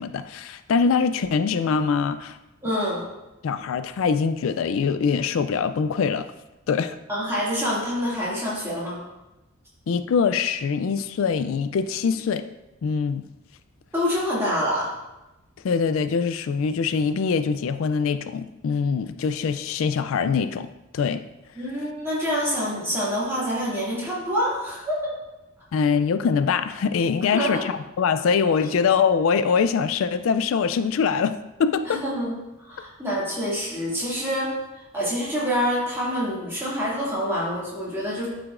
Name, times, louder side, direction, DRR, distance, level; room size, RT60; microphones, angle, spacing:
voice 1, 0.0-2.4 3.4-6.3 6.7-7.0 9.9-12.4 12.8-13.2 15.6-20.7 20.9-21.2 25.7-32.0, left 6 dB, 75° left, 11 dB, 0.3 m, -23 dB
voice 2, 2.6-3.0 7.1-9.0 13.9-14.9 21.6-25.1 27.3-27.5 31.9-34.5 34.9-38.3, equal, 10° right, -7 dB, 2.2 m, -26 dB
12.0 x 4.9 x 2.5 m, 0.99 s
head